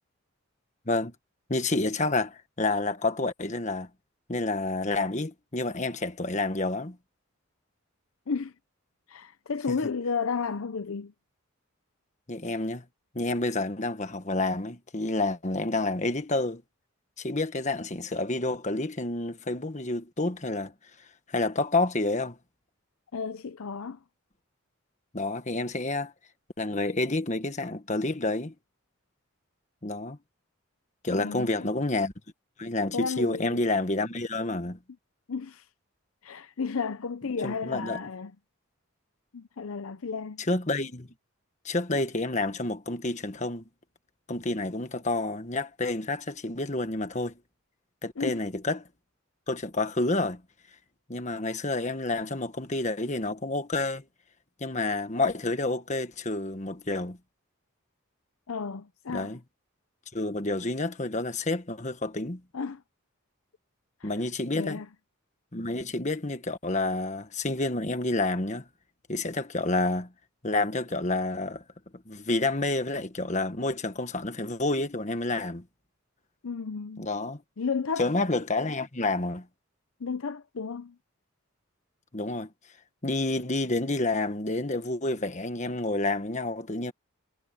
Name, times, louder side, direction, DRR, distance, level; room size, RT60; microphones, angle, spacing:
voice 1, 1.5-3.9 4.3-7.0 9.7-9.9 12.3-12.8 13.1-16.6 17.2-20.7 21.3-22.4 25.1-26.1 26.6-28.5 29.8-30.2 31.0-32.1 32.6-34.8 37.4-38.0 40.4-41.1 41.6-43.6 44.3-47.4 48.0-48.9 49.5-50.4 51.1-54.0 54.6-57.2 59.1-59.4 60.1-62.4 64.0-64.8 65.5-68.7 69.1-70.1 70.4-71.6 71.9-75.6 77.0-77.4 78.0-79.5 82.1-82.5 83.0-86.9, left 2 dB, 35° left, 1.5 m, -29 dB
voice 2, 9.1-11.1 23.1-24.0 31.1-31.6 32.9-33.6 35.3-35.6 36.2-38.3 39.3-40.4 48.2-48.4 58.5-59.3 62.5-62.8 64.0-64.1 64.5-64.9 76.4-77.1 77.6-78.0 80.0-80.9, left 5 dB, 75° left, 0.6 m, -33 dB
head